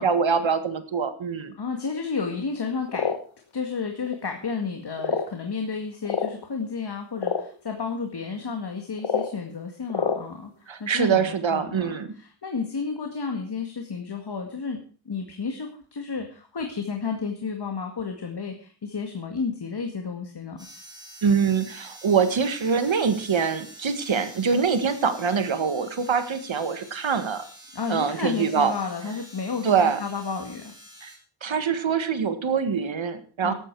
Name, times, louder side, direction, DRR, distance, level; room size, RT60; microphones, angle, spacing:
voice 1, 0.0-1.5 10.7-12.1 21.2-27.4 27.9-28.7 29.6-30.0 31.0-31.1 31.4-33.5, right 6 dB, 70° right, 10 dB, 1.8 m, -24 dB
voice 2, 1.6-3.1 3.5-14.8 15.1-20.6 27.7-30.7 33.4-33.5, left 5 dB, 55° left, 3 dB, 2.1 m, -32 dB
sound 1, 2.9-3.2 4.1-4.2 5.0-5.3 6.1-6.3 7.2-7.4 9.0-9.3 9.9-10.2, left 5 dB, 75° left, 1.8 m, -26 dB
sound 2, 20.6-31.2, right 1 dB, 10° right, 5.2 m, -47 dB
14.5 x 12.5 x 4.8 m, 0.40 s
wide cardioid pair, 110°, 48 cm